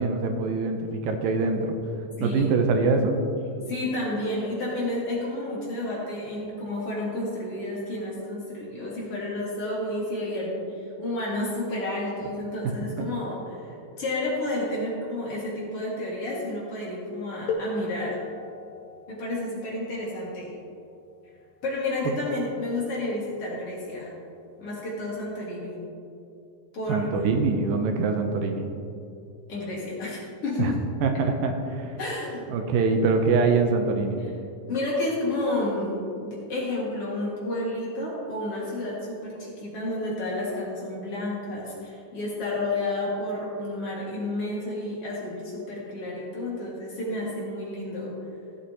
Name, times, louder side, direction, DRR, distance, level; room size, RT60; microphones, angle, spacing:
voice 1, 0.0-1.7 2.2-3.2 13.0-13.1 26.9-28.7 30.6-30.7 31.0-31.9 32.5-34.2, right 4 dB, 80° right, 5 dB, 2.4 m, -24 dB
voice 2, 2.2-2.5 3.7-18.2 19.1-20.5 21.6-24.1 24.6-25.8 26.7-27.2 29.5-30.8 32.0-32.5 34.2-34.3 34.7-48.1, left 1 dB, 45° left, -5 dB, 2.5 m, -31 dB
sound 1, 17.5-22.9 24.0-24.1 24.9-25.1, left 3 dB, 90° left, 2.9 m, -38 dB
15.0 x 8.2 x 2.9 m, 2.6 s
omnidirectional pair, 4.1 m